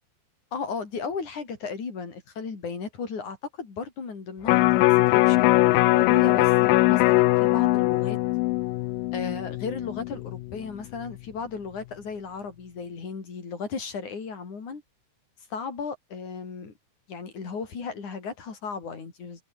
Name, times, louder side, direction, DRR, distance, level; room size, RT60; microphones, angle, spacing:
voice 1, 0.5-8.2 9.1-14.8 15.5-16.7 17.1-19.4, left 5 dB, 55° left, 6.0 m, -35 dB
Electric guitar, 4.5-10.7 11.1-11.2, left 20 dB, 80° left, 2.2 m, -21 dB
omnidirectional pair, 4.1 m